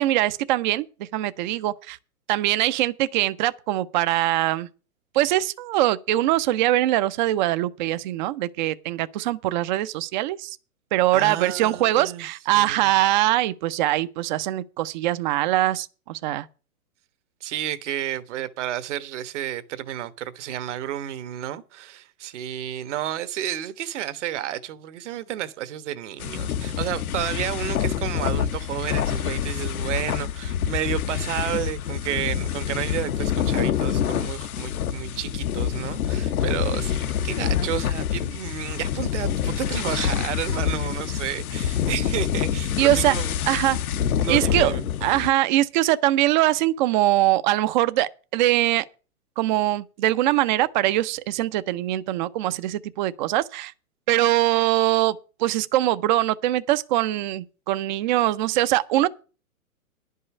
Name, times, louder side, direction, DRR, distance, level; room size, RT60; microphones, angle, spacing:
voice 1, 0.0-2.0 2.3-4.7 5.1-10.6 10.9-16.5 42.8-43.1 43.5-43.8 44.3-44.7 45.0-48.8 49.4-53.7 54.1-59.1, right 15 dB, 35° right, 0.6 m, -22 dB
voice 2, 11.1-12.3 12.5-12.9 17.4-43.8 44.2-44.9, right 11 dB, 55° right, 1.2 m, -31 dB
sound 1, 26.2-45.3, left 9 dB, 75° left, 1.0 m, -26 dB
10.5 x 5.5 x 8.3 m
hypercardioid pair, 135°, 43 cm